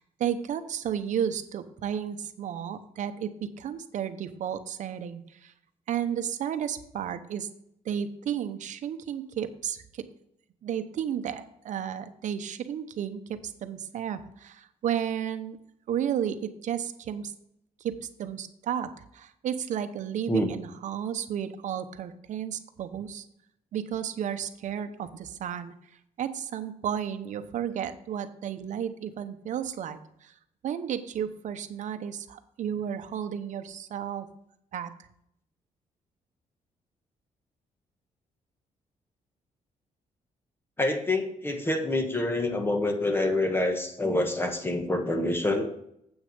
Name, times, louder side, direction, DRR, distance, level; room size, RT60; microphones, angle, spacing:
voice 1, 0.0-5.5 5.9-7.5 7.8-10.0 10.6-15.6 15.9-17.3 17.8-23.2 23.7-25.7 26.2-30.3 30.6-34.3 34.7-34.9, right 9 dB, 70° right, 10 dB, 0.8 m, -33 dB
voice 2, 40.8-45.7, left 2 dB, 15° left, 5 dB, 1.4 m, -27 dB
8.3 x 6.3 x 5.3 m, 0.74 s
cardioid pair, 100°, 13 cm